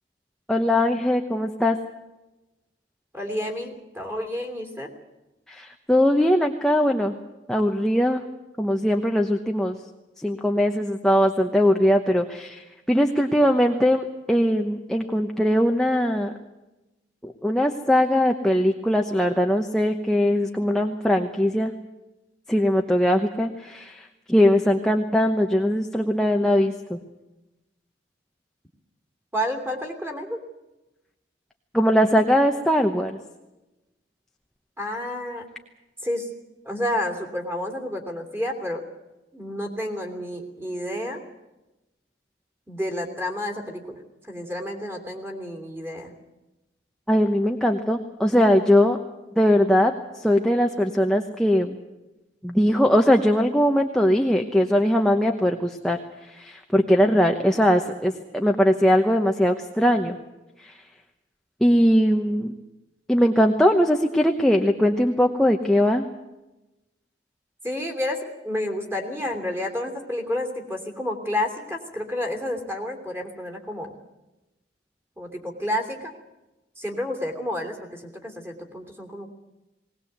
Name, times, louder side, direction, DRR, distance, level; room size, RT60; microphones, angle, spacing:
voice 1, 0.5-1.8 5.5-7.2 7.5-8.2 8.6-9.8 10.2-16.3 17.2-21.7 22.5-27.0 31.7-33.2 47.1-49.0 49.4-51.8 52.4-56.0 56.3-60.2 60.6-60.8 61.6-62.5 63.1-66.1, equal, 5° left, 2 dB, 1.0 m, -20 dB
voice 2, 3.1-4.9 29.3-30.4 34.8-35.4 36.0-36.3 36.6-38.8 39.3-41.2 42.7-44.0 44.3-46.1 67.6-73.9 75.2-76.1 76.8-79.3, left 1 dB, 10° right, 1 dB, 3.1 m, -30 dB
20.0 x 19.0 x 8.1 m, 1.0 s
head